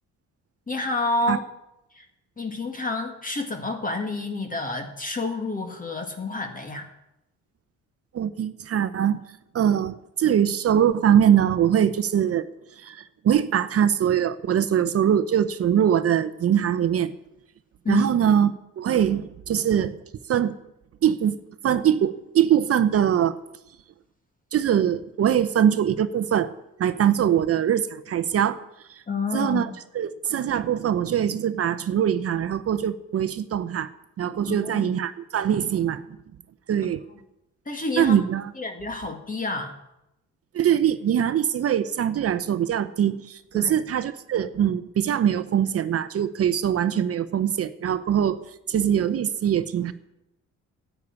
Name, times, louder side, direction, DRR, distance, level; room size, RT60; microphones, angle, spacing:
voice 1, 0.7-1.4 1.9-2.1 2.4-6.9 17.8-18.2 29.1-29.7 34.5-34.9 37.7-38.2 38.6-39.8 43.5-43.8, left 2 dB, 25° left, 5 dB, 1.8 m, -29 dB
voice 2, 8.1-9.2 9.5-12.5 12.8-17.1 17.9-20.0 20.3-20.5 21.0-21.4 21.6-23.4 24.5-26.5 26.8-28.6 28.9-29.0 29.3-29.7 29.9-33.9 34.2-36.0 36.7-37.0 38.0-38.5 40.5-48.4 48.7-49.9, right 9 dB, 50° right, 13 dB, 0.7 m, -22 dB
10.5 x 8.4 x 9.6 m, 0.89 s
cardioid pair, 90°, 30 cm